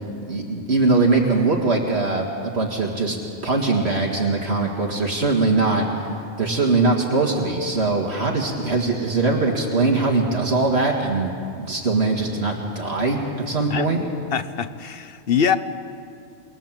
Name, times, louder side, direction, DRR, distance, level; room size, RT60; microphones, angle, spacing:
voice 1, 0.3-3.2 3.4-5.9 6.4-11.3 11.6-14.0, right 3 dB, 60° right, 0 dB, 2.3 m, -21 dB
voice 2, 13.7-15.6, left 7 dB, 55° left, 12 dB, 1.1 m, -24 dB
27.5 x 21.5 x 7.6 m, 2.5 s
omnidirectional pair, 1.2 m